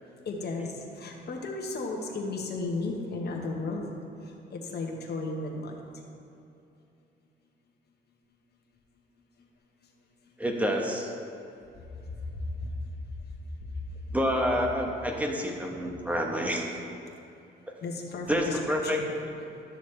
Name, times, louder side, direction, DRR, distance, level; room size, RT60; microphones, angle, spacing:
voice 1, 0.2-3.9 4.2-5.7 12.3-12.7 17.8-19.1, left 3 dB, 55° left, 1 dB, 1.3 m, -34 dB
voice 2, 10.4-11.1 14.1-16.8 18.3-19.0, equal, 5° right, 1 dB, 1.1 m, -28 dB
12.5 x 6.5 x 3.3 m, 2.7 s
cardioid pair, 90°, 20 cm